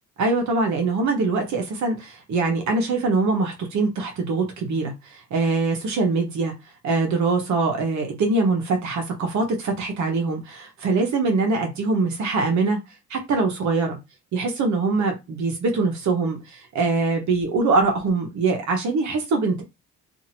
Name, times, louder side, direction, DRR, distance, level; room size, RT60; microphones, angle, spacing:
voice 1, 0.2-6.5 6.8-12.8 13.1-14.0 14.3-19.6, right 3 dB, 70° right, 1.0 m, -23 dB
2.8 x 2.6 x 2.8 m
cardioid pair, 90°, 30 cm